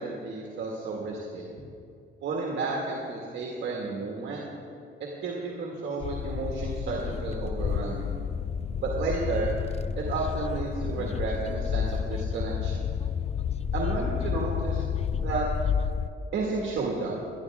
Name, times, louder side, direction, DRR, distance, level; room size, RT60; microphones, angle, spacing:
voice 1, 0.0-1.5 2.2-4.5 5.0-8.1 8.8-9.5 10.0-12.9 13.7-14.8 15.1-15.5 16.3-17.2, right 3 dB, 70° right, -2 dB, 1.9 m, -32 dB
sound 1, 6.0-16.1, left 7 dB, 30° left, 0.4 m, -30 dB
17.5 x 11.5 x 3.6 m, 2.5 s
cardioid pair, 90°, 20 cm